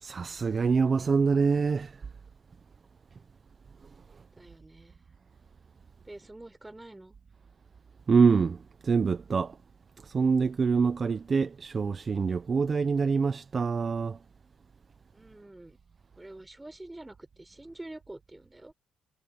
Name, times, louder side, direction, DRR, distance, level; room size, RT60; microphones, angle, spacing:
voice 1, 0.0-2.1 8.1-9.6 10.0-14.2, right 5 dB, 40° right, 0.7 m, -25 dB
voice 2, 4.4-5.1 6.0-7.2 15.1-15.8 16.2-18.7, right 1 dB, 10° right, 5.1 m, -47 dB
cardioid pair, 90°, 0 cm